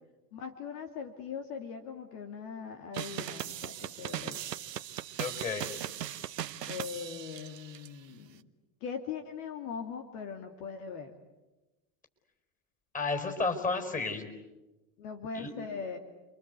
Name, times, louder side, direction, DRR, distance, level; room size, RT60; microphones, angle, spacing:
voice 1, 0.3-4.4 6.7-8.4 8.8-11.1 15.0-16.0, left 6 dB, 60° left, 5 dB, 2.7 m, -40 dB
sound 1, 2.9-7.9, right 11 dB, 85° right, 1.0 m, -39 dB
voice 2, 5.2-5.7 12.9-14.3 15.3-15.5, left 3 dB, 15° left, 6 dB, 5.1 m, -32 dB
30.0 x 24.0 x 8.2 m, 1.1 s
hypercardioid pair, 85°, 48 cm